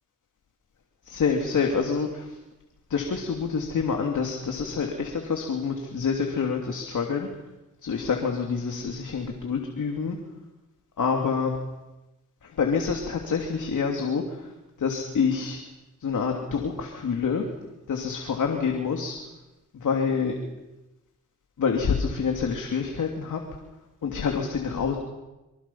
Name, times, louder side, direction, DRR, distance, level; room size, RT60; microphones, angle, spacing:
voice 1, 1.1-2.3 2.9-7.3 7.8-10.2 11.0-11.5 12.4-14.5 14.8-15.6 16.0-17.5 17.9-19.2 19.7-20.3 21.6-23.4 24.0-25.0, left 5 dB, 70° left, 2 dB, 3.0 m, -27 dB
26.5 x 24.5 x 5.8 m, 1.0 s
cardioid pair, 75°, 31 cm